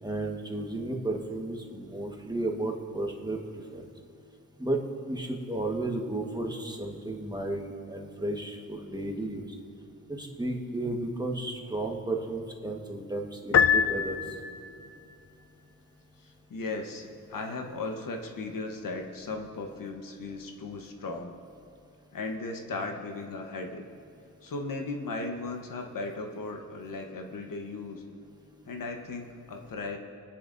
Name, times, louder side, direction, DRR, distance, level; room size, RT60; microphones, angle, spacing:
voice 1, 0.0-3.4 3.7-3.9 4.6-4.8 5.1-9.6 10.1-14.4, right 2 dB, 10° right, 1 dB, 1.5 m, -33 dB
Piano, 13.5-14.8, left 7 dB, 45° left, 0.4 m, -24 dB
voice 2, 16.2-21.3 22.1-23.8 24.4-28.0 28.7-30.0, left 3 dB, 65° left, 3 dB, 1.2 m, -36 dB
23.5 x 9.7 x 2.7 m, 2.6 s
cardioid pair, 75°, 35 cm